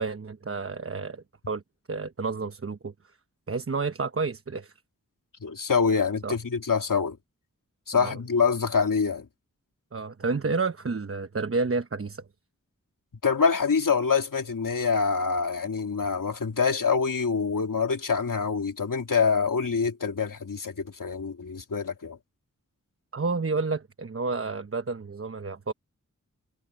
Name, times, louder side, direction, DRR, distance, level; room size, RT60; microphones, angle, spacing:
voice 1, 0.0-1.6 1.9-2.9 3.5-4.7 6.2-6.4 7.9-8.2 9.9-12.3 23.1-25.7, right 4 dB, 45° right, 1.0 m, -30 dB
voice 2, 5.4-7.2 7.9-9.3 13.2-22.2, left 5 dB, 80° left, 2.7 m, -25 dB
cardioid pair, 45°, 32 cm